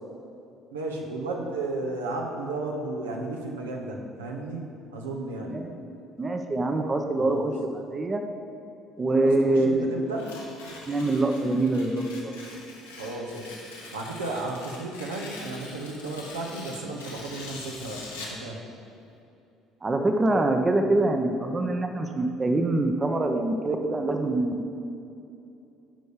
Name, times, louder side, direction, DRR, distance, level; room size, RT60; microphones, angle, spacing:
voice 1, 0.7-5.6 7.2-7.5 9.2-10.3 13.0-13.5 13.9-18.6, right 2 dB, 85° right, 0 dB, 0.9 m, -34 dB
voice 2, 6.2-8.2 9.0-9.9 10.9-12.4 19.8-24.7, right 2 dB, 25° right, 5 dB, 0.7 m, -25 dB
Tearing, 10.1-18.4, left 2 dB, 85° left, 1.3 m, -43 dB
9.1 x 5.3 x 5.0 m, 2.7 s
hypercardioid pair, 55°, 0 cm